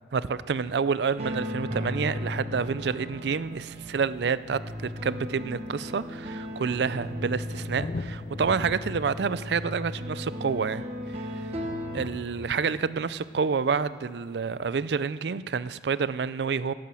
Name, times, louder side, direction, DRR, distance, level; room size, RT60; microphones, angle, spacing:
voice 1, 0.1-11.3 11.9-16.7, right 5 dB, 75° right, 0.4 m, -28 dB
sound 1, 1.2-12.1, left 1 dB, 35° right, 1.1 m, -36 dB
Thunder, 3.4-3.5 4.5-4.6 4.8-12.1 13.8-13.9, left 3 dB, 40° left, 0.3 m, -43 dB
17.5 x 8.7 x 6.2 m
head